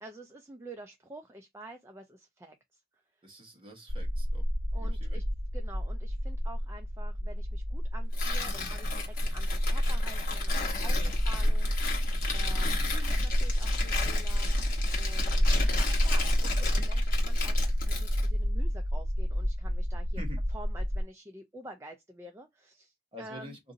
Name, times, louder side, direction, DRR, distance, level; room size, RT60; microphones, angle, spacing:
voice 1, 0.0-2.8 3.1-3.2 4.7-5.2 5.5-20.2 20.5-23.6, right 1 dB, 15° right, 0.4 m, -49 dB
voice 2, 3.2-4.5 4.8-5.2 11.0-11.1 20.2-20.4 23.1-23.6, equal, 30° right, 1.0 m, -46 dB
sound 1, 3.9-21.0, equal, 55° right, 1.2 m, -29 dB
Tearing, 8.1-18.3, left 4 dB, 50° left, 1.0 m, -36 dB
2.6 x 2.5 x 3.8 m
head